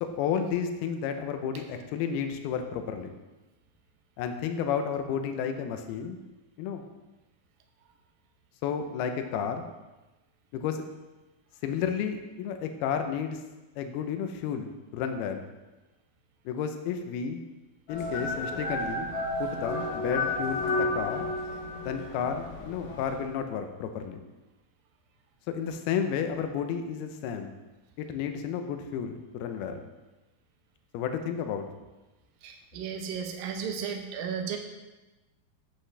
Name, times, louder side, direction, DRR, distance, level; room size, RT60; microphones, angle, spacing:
voice 1, 0.0-3.1 4.2-6.2 6.6-6.8 8.6-9.7 10.5-10.8 11.6-13.4 13.8-15.4 16.5-17.4 17.9-19.1 19.4-21.3 21.8-24.2 25.5-27.5 28.0-29.8 30.9-31.7, left 7 dB, 85° left, 6 dB, 2.7 m, -32 dB
sound 1, 17.9-23.3, left 2 dB, 60° left, 2.5 m, -32 dB
voice 2, 32.4-34.6, right 7 dB, 75° right, 4 dB, 2.6 m, -34 dB
10.0 x 7.8 x 3.3 m, 1.1 s
omnidirectional pair, 4.4 m